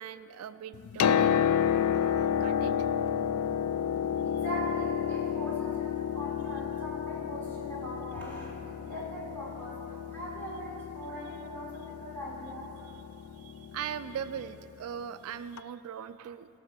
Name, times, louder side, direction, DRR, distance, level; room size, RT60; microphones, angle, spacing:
voice 1, 0.0-1.4 1.9-2.9 12.8-13.0 13.3-16.5, right 8 dB, 75° right, 13 dB, 0.3 m, -40 dB
Piano, 0.7-14.5 15.6-15.7, left 8 dB, 80° left, 0.3 m, -31 dB
voice 2, 4.2-8.5 8.8-12.9, equal, 10° left, -8 dB, 3.4 m, -41 dB
17.0 x 6.1 x 6.7 m, 3.0 s
head